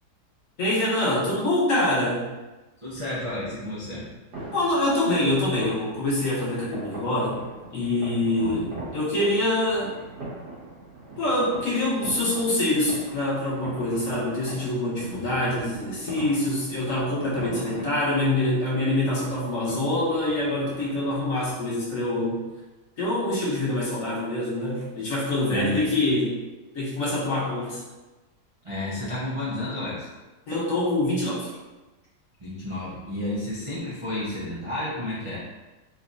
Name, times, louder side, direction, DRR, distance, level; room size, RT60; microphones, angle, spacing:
voice 1, 0.6-2.3 4.5-7.4 7.7-10.0 11.2-22.4 23.0-26.4 26.7-27.8 30.5-31.5, left 1 dB, 55° left, -7 dB, 1.4 m, -25 dB
voice 2, 2.8-4.1 8.4-8.9 15.1-15.3 25.5-25.9 28.6-30.1 32.4-35.4, left 1 dB, 35° right, -10 dB, 0.5 m, -31 dB
sound 1, 4.3-21.6, right 2 dB, 85° right, 1.8 m, -41 dB
4.0 x 2.8 x 2.6 m, 1.1 s
omnidirectional pair, 1.7 m